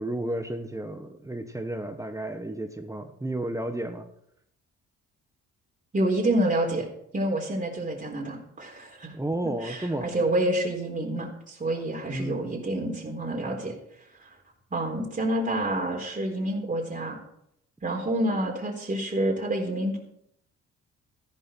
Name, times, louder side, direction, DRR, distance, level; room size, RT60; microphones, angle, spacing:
voice 1, 0.0-4.1 9.1-10.2 12.1-12.4, right 1 dB, 10° right, 7 dB, 1.3 m, -32 dB
voice 2, 5.9-6.9 7.1-9.1 9.6-13.7 14.2-14.3 14.7-17.2 17.8-20.0, right 1 dB, 25° right, -2 dB, 3.9 m, -28 dB
13.5 x 11.5 x 4.6 m, 0.73 s
cardioid pair, 90°, 30 cm